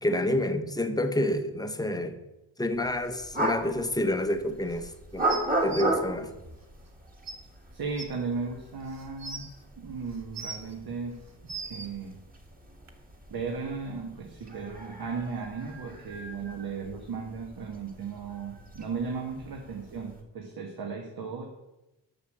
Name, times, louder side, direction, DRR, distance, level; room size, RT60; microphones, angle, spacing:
voice 1, 0.0-2.2 2.6-5.3 5.6-6.3, left 1 dB, 10° left, 8 dB, 0.7 m, -28 dB
sound 1, 2.8-20.2, right 1 dB, 20° right, 1.6 m, -37 dB
sound 2, 5.3-5.8 6.9-7.0 7.3-7.4 8.0-8.1 8.9-9.5 10.1-10.7 11.2-11.9 12.9-13.0, right 4 dB, 40° right, 1.2 m, -39 dB
voice 2, 7.7-11.1 11.4-12.2 13.3-21.4, right 5 dB, 60° right, 1 dB, 1.4 m, -36 dB
6.8 x 6.4 x 6.6 m, 0.97 s
cardioid pair, 105°, 42 cm